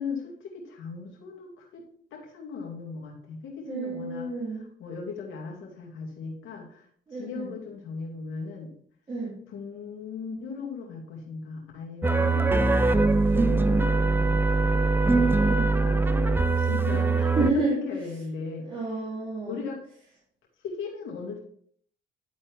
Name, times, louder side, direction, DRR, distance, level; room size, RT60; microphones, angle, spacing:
voice 1, 0.0-1.8 2.1-4.3 4.8-8.7 9.5-12.5 13.3-14.9 15.8-18.7 19.5-19.8 20.6-21.4, left 5 dB, 80° left, -1 dB, 2.4 m, -37 dB
voice 2, 3.6-4.6 7.1-7.5 9.1-9.3 15.4-15.9 17.3-17.8 18.7-19.6, right 2 dB, 25° right, -8 dB, 3.0 m, -30 dB
sound 1, 12.0-17.5, right 3 dB, 10° right, 0.5 m, -22 dB
11.5 x 4.2 x 3.4 m, 0.62 s
cardioid pair, 90°, 20 cm